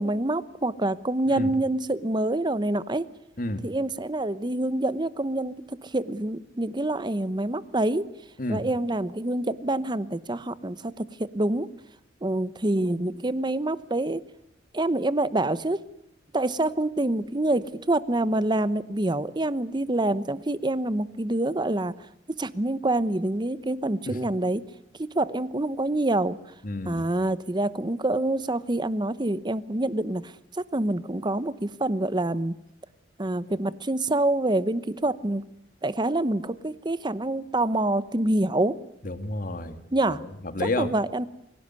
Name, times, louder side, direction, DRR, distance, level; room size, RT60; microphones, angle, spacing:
voice 1, 0.0-3.0 3.6-8.1 8.5-11.7 12.2-14.2 14.7-15.8 16.3-21.9 22.3-24.6 25.0-26.4 26.8-30.3 30.7-32.5 33.2-35.4 35.8-38.8 39.9-40.2 40.8-41.3, right 1 dB, 25° right, 16 dB, 0.9 m, -26 dB
voice 2, 26.6-27.1 39.0-39.8 40.2-40.9, left 2 dB, 50° left, 10 dB, 2.0 m, -30 dB
25.0 x 17.0 x 9.6 m, 0.78 s
head